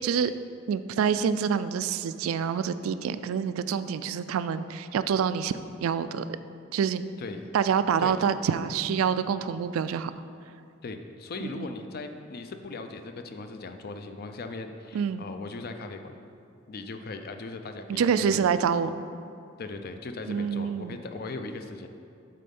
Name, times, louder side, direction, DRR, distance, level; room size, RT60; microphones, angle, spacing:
voice 1, 0.7-5.5 5.8-6.2 6.7-7.0 7.5-10.1 11.4-11.7 14.9-15.2 17.9-18.9 20.3-21.0, right 7 dB, 90° right, 12 dB, 0.3 m, -26 dB
voice 2, 7.2-7.5 8.0-8.2 10.8-16.1 16.7-18.5 19.6-21.9, left 3 dB, 50° left, 7 dB, 0.5 m, -39 dB
7.6 x 4.2 x 5.3 m, 2.5 s
head